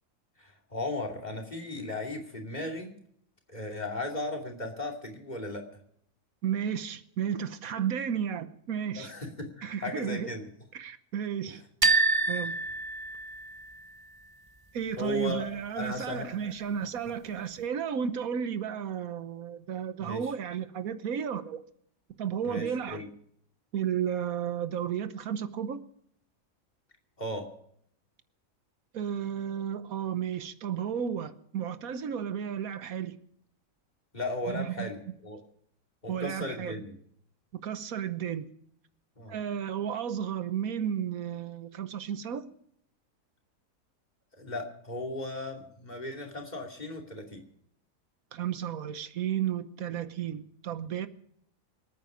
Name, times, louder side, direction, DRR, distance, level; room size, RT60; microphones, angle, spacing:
voice 1, 0.4-2.9 3.5-5.6 8.9-10.5 11.5-11.6 15.0-15.5 15.8-16.3 20.0-20.3 22.4-23.1 27.2-27.5 34.1-35.4 36.0-36.9 39.2-39.4 44.4-47.4, left 2 dB, 30° left, 2.9 m, -36 dB
voice 2, 6.4-9.1 9.6-10.3 10.7-12.6 14.7-21.6 22.2-23.0 23.7-25.8 28.9-33.2 34.5-34.9 36.1-36.8 37.6-38.5 39.3-42.5 48.3-51.1, right 8 dB, 85° right, 1.4 m, -33 dB
sound 1, 11.8-13.7, right 3 dB, 25° right, 0.5 m, -27 dB
25.5 x 9.3 x 5.0 m
omnidirectional pair, 1.5 m